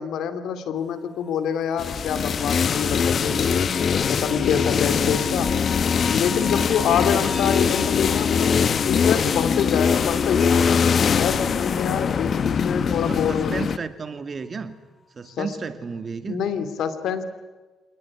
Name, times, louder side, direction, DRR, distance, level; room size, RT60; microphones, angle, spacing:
voice 1, 0.0-3.8 4.1-5.5 6.1-8.5 8.8-10.8 11.2-13.6 15.4-15.5 16.3-17.2, left 7 dB, 75° left, 11 dB, 2.9 m, -26 dB
sound 1, 0.8-12.8 14.2-14.3, left 4 dB, 20° left, 3.4 m, -41 dB
sound 2, 1.8-13.8, left 6 dB, 50° left, 1.1 m, -22 dB
voice 2, 13.1-14.8 15.1-16.4, right 5 dB, 40° right, 10 dB, 2.4 m, -33 dB
27.5 x 19.5 x 9.8 m, 1.2 s
cardioid pair, 90°, 0 cm